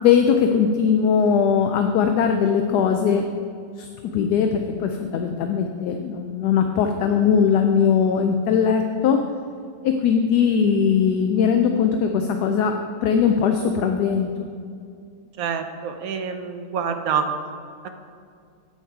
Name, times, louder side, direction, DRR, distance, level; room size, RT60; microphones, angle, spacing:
voice 1, 0.0-3.3 3.8-3.9 4.1-9.2 9.8-14.5, left 7 dB, 70° left, 5 dB, 1.1 m, -20 dB
voice 2, 15.4-17.3 17.8-17.9, right 7 dB, 65° right, 7 dB, 1.0 m, -26 dB
8.6 x 7.2 x 4.6 m, 2.3 s
omnidirectional pair, 2.0 m